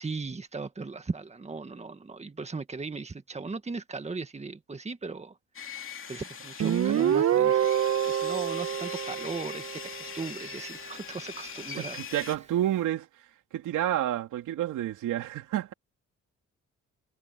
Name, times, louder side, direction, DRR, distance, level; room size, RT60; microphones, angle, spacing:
voice 1, 0.0-5.4 6.1-7.6 8.1-12.0, right 4 dB, 20° right, 1.8 m, -38 dB
Sawing, 5.5-12.4, left 6 dB, 45° left, 2.7 m, -41 dB
Guitar, 6.6-10.1, right 9 dB, 55° right, 1.4 m, -26 dB
voice 2, 11.7-13.1 13.5-15.7, right 12 dB, 85° right, 3.1 m, -29 dB
cardioid pair, 90°, 30 cm